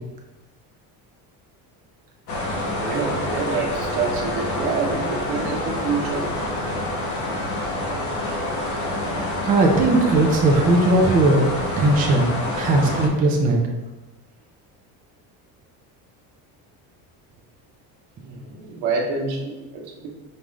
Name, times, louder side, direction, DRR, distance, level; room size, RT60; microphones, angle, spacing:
sound 1, 2.3-13.1, left 1 dB, 45° left, 0.7 m, -27 dB
voice 1, 2.5-6.3 18.2-20.1, right 4 dB, 90° right, 0 dB, 1.0 m, -27 dB
voice 2, 9.4-11.5 11.8-12.3 12.5-13.6, right 2 dB, 25° right, 0 dB, 0.3 m, -18 dB
5.2 x 2.4 x 3.1 m, 1.1 s
cardioid pair, 170°, 40 cm